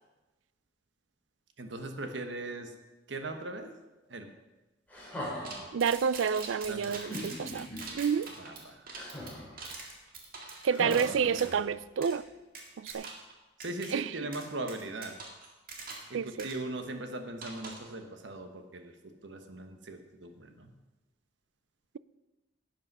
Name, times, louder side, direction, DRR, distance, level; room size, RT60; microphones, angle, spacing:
voice 1, 1.6-2.7 3.1-3.7 4.1-4.3 6.7-7.0 8.4-8.9 13.6-15.2 16.1-20.7, right 2 dB, 70° right, 6 dB, 1.2 m, -39 dB
sound 1, 4.9-5.7 6.9-7.8 8.9-9.6 10.7-11.8 12.9-13.0, left 1 dB, 10° left, 2.9 m, -40 dB
sound 2, 5.4-11.6 12.0-12.2 12.5-13.3 13.6-13.9 14.3-16.1 16.4-16.5 17.4-17.9, right 3 dB, 50° right, 1.9 m, -44 dB
voice 2, 5.7-7.7 7.9-8.3 10.6-12.2 12.8-13.1 13.9-14.3 16.1-16.5, right 6 dB, 90° right, 18 dB, 0.4 m, -29 dB
11.0 x 8.6 x 5.4 m, 1.1 s
head